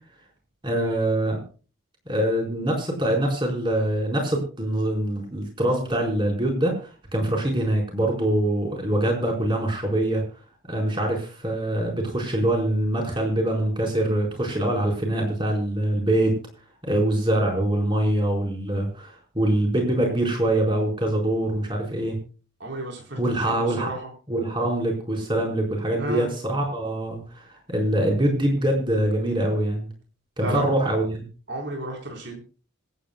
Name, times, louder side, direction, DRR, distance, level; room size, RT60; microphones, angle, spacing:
voice 1, 0.6-1.4 2.1-10.2 10.7-16.4 16.8-22.2 23.2-23.9 24.3-29.9 30.4-31.3, right 1 dB, 25° right, 1 dB, 4.6 m, -24 dB
voice 2, 22.6-24.1 26.0-26.3 30.4-30.7 31.5-32.4, right 1 dB, 55° right, 1 dB, 4.1 m, -32 dB
25.5 x 9.5 x 2.3 m, 0.36 s
head